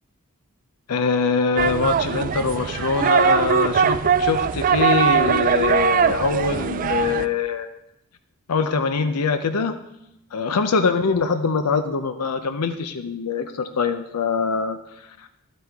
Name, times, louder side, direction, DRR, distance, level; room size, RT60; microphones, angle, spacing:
voice 1, 0.9-7.7 8.5-9.7 10.3-15.3, left 5 dB, 90° left, 9 dB, 0.5 m, -23 dB
sound 1, 1.6-7.3, right 7 dB, 40° right, 0.3 m, -21 dB
11.0 x 8.4 x 3.4 m, 0.84 s
head